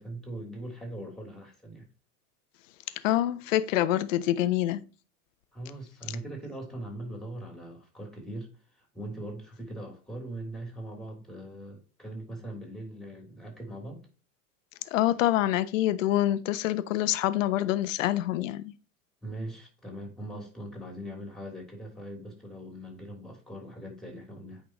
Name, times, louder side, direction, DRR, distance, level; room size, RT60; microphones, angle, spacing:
voice 1, 0.0-1.9 5.5-14.0 19.2-24.6, right 1 dB, ahead, 3.3 m, -41 dB
voice 2, 3.0-4.8 14.9-18.7, left 14 dB, 60° left, 0.8 m, -26 dB
8.6 x 5.5 x 3.0 m
figure-of-eight pair, 90°, 45 cm